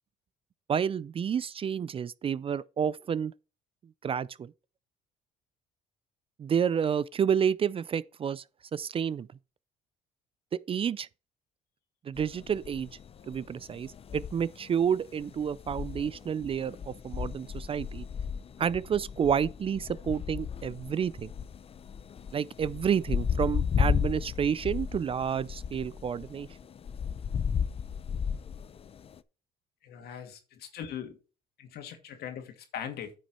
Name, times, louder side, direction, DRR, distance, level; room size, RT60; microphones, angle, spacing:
voice 1, 0.7-3.3 4.0-4.5 6.4-8.4 8.7-9.3 10.7-11.1 12.0-12.9 13.3-18.1 18.6-21.3 22.3-26.5, right 7 dB, 35° right, 0.4 m, -30 dB
sound 1, 12.2-29.2, left 7 dB, 35° left, 0.6 m, -34 dB
voice 2, 29.8-31.2 31.6-33.1, left 9 dB, 70° left, 2.3 m, -40 dB
9.7 x 6.1 x 4.3 m
cardioid pair, 110°, 17 cm